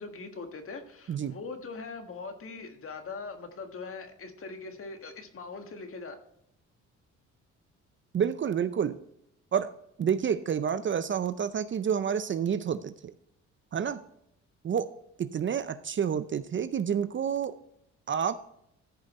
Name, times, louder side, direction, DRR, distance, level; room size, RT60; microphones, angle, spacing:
voice 1, 0.0-6.1, left 4 dB, 45° left, 6 dB, 1.6 m, -41 dB
voice 2, 8.1-9.0 9.5-9.7 10.0-13.1 13.7-14.0 14.6-14.9 15.2-17.5 18.1-18.4, right 8 dB, 40° right, 13 dB, 0.6 m, -29 dB
14.0 x 5.1 x 4.2 m, 0.77 s
cardioid pair, 90°, 30 cm